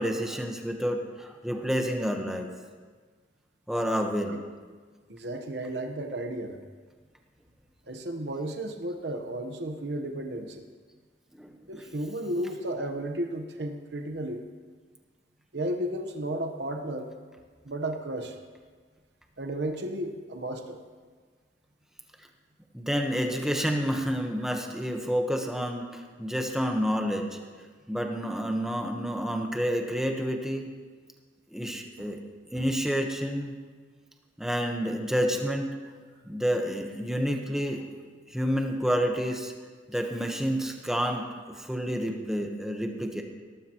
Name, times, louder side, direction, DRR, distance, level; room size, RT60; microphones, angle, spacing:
voice 1, 0.0-2.5 3.7-4.4 11.3-11.8 22.7-27.2 27.9-30.7 31.5-32.2 32.5-33.5 34.4-35.7 36.2-37.8 38.3-39.5 39.9-43.2, equal, 5° right, 2 dB, 1.1 m, -29 dB
voice 2, 5.1-6.6 7.9-10.6 11.7-14.4 15.5-17.1 17.6-18.4 19.4-20.8 32.5-32.6, right 1 dB, 70° right, 5 dB, 1.1 m, -33 dB
18.5 x 13.5 x 3.0 m, 1.5 s
head